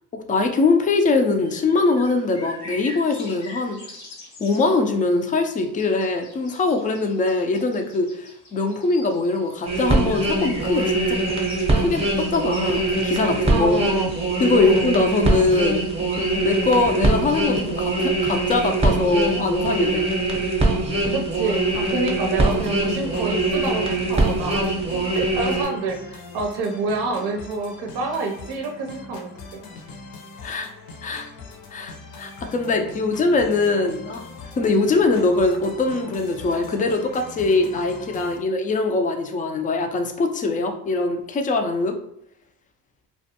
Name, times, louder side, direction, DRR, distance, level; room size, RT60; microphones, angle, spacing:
voice 1, 0.1-3.8 4.4-11.2 11.8-13.8 14.4-15.9 16.3-20.1 30.4-30.7 31.0-31.3 31.7-34.3 34.6-42.0, left 3 dB, 20° left, 5 dB, 0.3 m, -22 dB
sound 1, 1.4-16.6, left 1 dB, 90° left, 1.0 m, -44 dB
sound 2, 9.7-25.6, right 2 dB, 15° right, 0.7 m, -22 dB
voice 2, 13.5-14.1 14.5-14.9 21.1-29.6, right 3 dB, 65° right, 3 dB, 0.6 m, -28 dB
sound 3, 22.4-38.4, left 3 dB, 60° left, 0.6 m, -41 dB
2.4 x 2.1 x 2.7 m, 0.76 s
cardioid pair, 85°, 41 cm